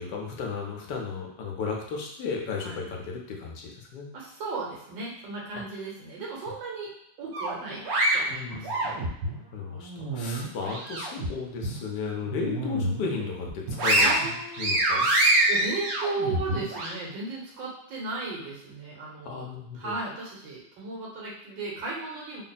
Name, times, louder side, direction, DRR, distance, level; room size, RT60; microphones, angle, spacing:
voice 1, 0.0-4.1 8.3-8.9 9.5-14.1 14.6-15.1 19.2-19.9, left 5 dB, 70° left, 0 dB, 1.3 m, -34 dB
voice 2, 4.1-6.9 7.2-7.8 8.1-8.8 14.0-14.8 15.1-19.4 19.7-22.4, right 3 dB, 75° right, -4 dB, 1.8 m, -35 dB
sound 1, 7.3-9.4 9.8-11.3 11.6-11.8 12.2-13.0 13.4-16.9, right 1 dB, 60° right, 1.1 m, -26 dB
3.8 x 2.1 x 4.1 m, 0.77 s
omnidirectional pair, 2.0 m